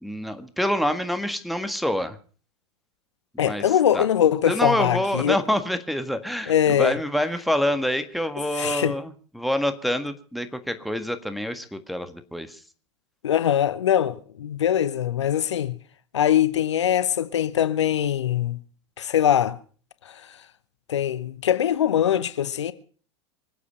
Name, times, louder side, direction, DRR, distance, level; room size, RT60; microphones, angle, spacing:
voice 1, 0.0-2.2 3.3-3.6 3.9-4.1 4.4-12.6, equal, ahead, 1.6 m, -26 dB
voice 2, 3.4-5.4 6.5-6.9 8.5-8.9 13.2-15.7 16.1-18.6 19.0-19.6 20.1-20.2 20.9-22.7, left 10 dB, 75° left, 0.9 m, -22 dB
25.0 x 8.5 x 5.6 m
figure-of-eight pair, 85°, 15 cm